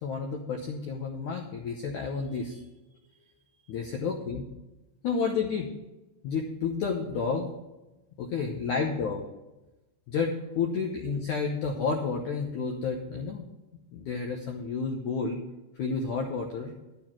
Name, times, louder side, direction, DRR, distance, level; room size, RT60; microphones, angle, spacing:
voice 1, 0.0-2.6 3.7-4.4 5.0-5.7 6.2-7.5 8.2-9.2 10.1-13.5 13.9-15.4 15.8-16.7, left 5 dB, 75° left, 1 dB, 1.9 m, -30 dB
12.0 x 7.0 x 6.0 m, 1.0 s
omnidirectional pair, 4.7 m